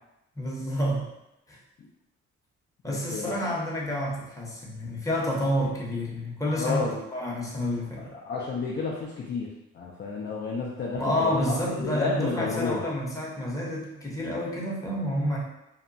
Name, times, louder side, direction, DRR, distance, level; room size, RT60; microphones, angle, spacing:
voice 1, 0.4-1.1 1.5-1.6 2.8-8.1 10.9-15.4, equal, 10° left, -4 dB, 0.7 m, -29 dB
voice 2, 2.9-3.3 6.6-7.0 8.0-9.5 9.7-12.8, left 4 dB, 35° left, -2 dB, 0.4 m, -31 dB
2.8 x 2.1 x 2.6 m, 0.91 s
cardioid pair, 90°, 30 cm